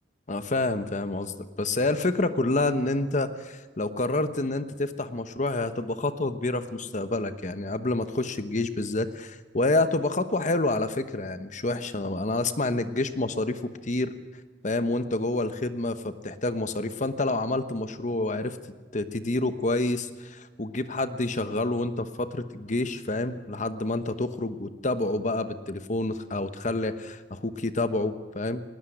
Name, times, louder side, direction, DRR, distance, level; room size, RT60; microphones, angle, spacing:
voice 1, 0.3-14.1 14.6-18.6 18.9-28.6, left 2 dB, 40° left, 10 dB, 1.1 m, -28 dB
19.5 x 18.5 x 10.0 m, 1.4 s
head